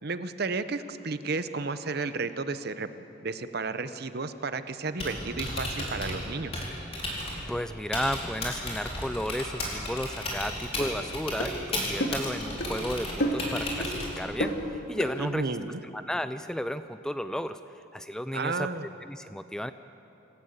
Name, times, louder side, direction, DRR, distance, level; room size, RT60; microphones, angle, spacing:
voice 1, 0.0-2.9 3.2-6.6 15.2-15.8 18.3-18.9, right 3 dB, 55° right, 11 dB, 0.8 m, -32 dB
Typing, 4.8-14.4, left 1 dB, 30° left, 4.4 m, -35 dB
voice 2, 7.5-15.6 15.9-18.7 19.1-19.7, equal, 5° left, 11 dB, 0.4 m, -33 dB
sound 1, 10.8-10.9 11.4-11.6 12.0-12.3 12.6-12.7 13.2-13.5 13.8-13.9 14.4-14.6 15.0-15.1, equal, 70° left, 2.4 m, -29 dB
27.0 x 14.0 x 8.1 m, 3.0 s
head